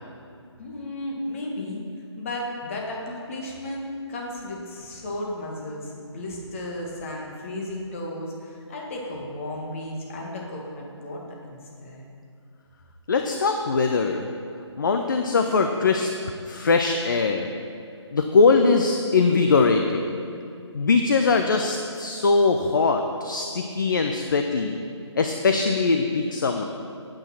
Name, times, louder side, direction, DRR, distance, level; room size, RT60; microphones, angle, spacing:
voice 1, 0.6-1.8 2.2-12.1, left 1 dB, 25° left, -2 dB, 1.8 m, -34 dB
voice 2, 13.1-14.3 14.8-16.1 16.5-17.6 18.1-20.1 20.7-24.8 25.2-26.6, left 4 dB, 40° left, 5 dB, 0.6 m, -21 dB
8.8 x 8.8 x 5.8 m, 2.4 s
figure-of-eight pair, 150°, 15 cm